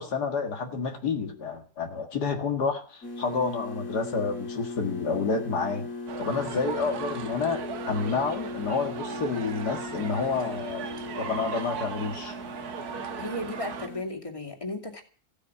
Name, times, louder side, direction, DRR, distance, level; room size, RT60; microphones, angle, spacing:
voice 1, 0.0-5.9 6.2-10.9 11.2-12.3, left 4 dB, 80° left, 5 dB, 2.3 m, -29 dB
sound 1, 3.0-14.0, left 3 dB, 50° left, 2.7 m, -38 dB
sound 2, 6.1-13.9, right 7 dB, 70° right, 1.6 m, -38 dB
voice 2, 13.2-15.0, left 1 dB, 20° left, 2 dB, 2.5 m, -35 dB
15.5 x 8.4 x 9.7 m, 0.42 s
omnidirectional pair, 1.7 m